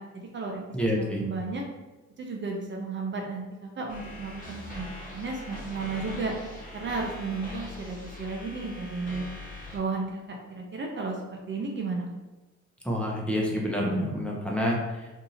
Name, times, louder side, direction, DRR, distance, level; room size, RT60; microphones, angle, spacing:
voice 1, 0.0-0.6 1.0-1.6 2.2-4.9 5.1-6.3 6.7-9.3 9.7-11.2 11.5-12.1, right 4 dB, 40° right, 0 dB, 0.6 m, -33 dB
voice 2, 0.7-1.2 12.8-15.1, equal, 5° left, -3 dB, 0.8 m, -28 dB
sound 1, 3.9-9.8, left 1 dB, 30° left, 1.1 m, -41 dB
2.7 x 2.6 x 4.1 m, 1.1 s
cardioid pair, 90°, 30 cm